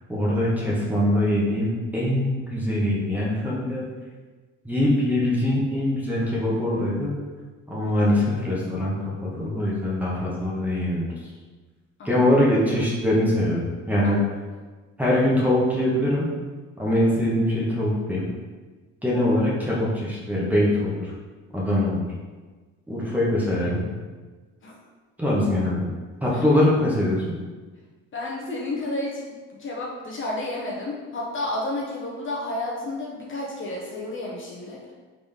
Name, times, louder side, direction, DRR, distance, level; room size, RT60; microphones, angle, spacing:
voice 1, 0.1-3.9 4.6-7.1 7.7-8.9 9.4-11.1 12.0-13.6 13.9-14.2 15.0-16.3 16.8-18.3 19.0-21.1 21.5-22.1 22.9-23.8 25.2-25.9 26.2-27.3, left 1 dB, 5° right, -6 dB, 1.3 m, -22 dB
voice 2, 28.1-34.9, left 2 dB, 40° left, -3 dB, 0.9 m, -31 dB
3.9 x 3.5 x 3.5 m, 1.3 s
cardioid pair, 100°, 30 cm